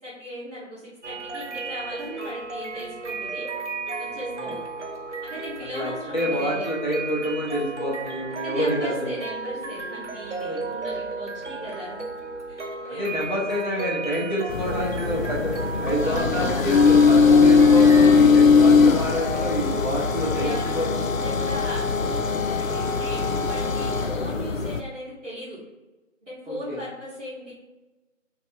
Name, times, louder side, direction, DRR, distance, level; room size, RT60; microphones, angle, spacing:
voice 1, 0.0-3.5 4.0-4.6 5.2-6.7 8.4-12.1 12.5-12.6 12.9-13.2 16.0-16.7 20.0-25.6 26.2-27.5, equal, 5° right, -20 dB, 1.5 m, -37 dB
sound 1, 1.0-18.1, right 3 dB, 65° right, 0.7 m, -34 dB
voice 2, 5.7-9.2 10.4-10.6 12.8-15.5 15.8-21.0 26.5-26.8, equal, 35° left, -6 dB, 1.3 m, -27 dB
sound 2, 14.5-24.8, left 5 dB, 85° left, 0.5 m, -20 dB
4.6 x 3.0 x 3.2 m, 1.1 s
figure-of-eight pair, 165°, 39 cm